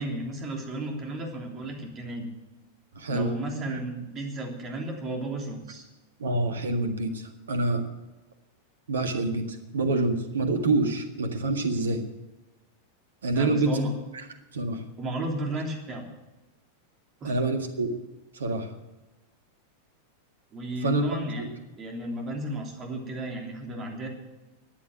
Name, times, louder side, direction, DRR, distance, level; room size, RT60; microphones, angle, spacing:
voice 1, 0.0-2.3 3.1-5.8 13.3-13.9 15.0-16.1 17.2-17.3 20.5-21.5 21.8-24.1, right 1 dB, 30° right, 2 dB, 3.3 m, -33 dB
voice 2, 3.0-3.3 3.6-3.8 6.2-7.8 8.9-12.0 13.2-13.8 14.5-14.8 17.2-17.9 18.3-18.7 20.8-21.5, right 2 dB, 65° right, 7 dB, 1.8 m, -27 dB
14.0 x 9.9 x 7.3 m, 1.1 s
figure-of-eight pair, 90°, 0 cm